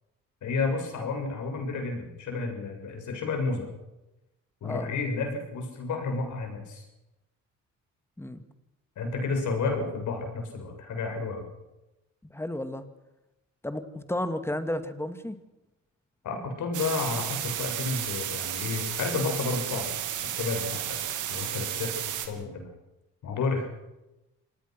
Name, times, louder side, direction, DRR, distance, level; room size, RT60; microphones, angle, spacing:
voice 1, 0.4-3.7 4.6-6.9 9.0-11.5 16.2-19.9 20.2-21.0 21.3-22.7 23.2-23.7, left 4 dB, 75° left, 3 dB, 7.3 m, -31 dB
voice 2, 12.2-12.8 13.6-15.4, left 1 dB, 10° left, 9 dB, 2.3 m, -32 dB
sound 1, 16.7-22.3, right 11 dB, 85° right, 3.0 m, -33 dB
26.0 x 19.0 x 6.1 m, 0.96 s
cardioid pair, 90°, 30 cm